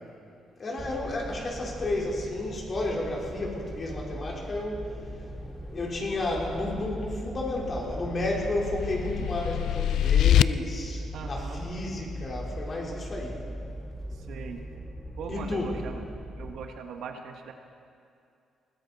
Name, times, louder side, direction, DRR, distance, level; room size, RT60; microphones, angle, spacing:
voice 1, 0.6-13.4 15.3-15.7, left 2 dB, 40° left, -2 dB, 3.8 m, -32 dB
sound 1, 0.8-16.7, equal, 10° right, 0.8 m, -39 dB
sound 2, 7.6-10.4, left 12 dB, 75° left, 0.3 m, -24 dB
voice 2, 11.1-11.7 14.2-14.6 15.2-16.0 16.4-17.5, right 6 dB, 75° right, 4 dB, 1.3 m, -40 dB
20.5 x 15.5 x 4.1 m, 2.5 s
cardioid pair, 90°, 0 cm